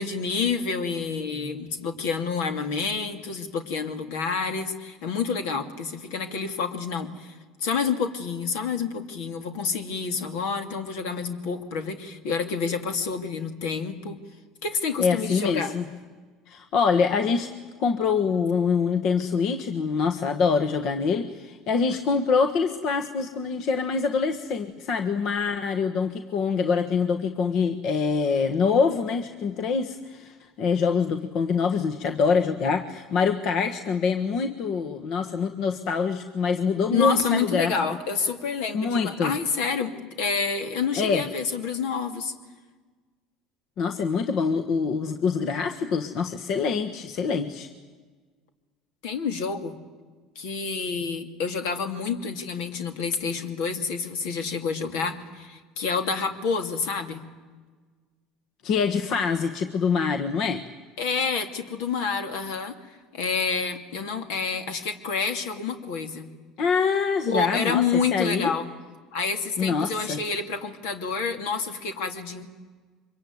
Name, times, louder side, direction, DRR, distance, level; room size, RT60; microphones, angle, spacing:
voice 1, 0.0-7.3 7.6-14.2 14.6-15.7 36.9-42.3 49.0-49.8 50.4-57.2 61.0-66.3 67.3-68.7 69.1-72.5, left 5 dB, 80° left, 8 dB, 2.6 m, -28 dB
voice 2, 15.0-15.8 16.5-17.5 17.8-37.7 38.7-39.3 41.0-41.2 43.8-47.7 58.6-60.6 66.6-68.5 69.6-70.2, left 5 dB, 60° left, 7 dB, 1.5 m, -25 dB
25.0 x 22.5 x 9.6 m, 1.4 s
supercardioid pair, 95°, 0 cm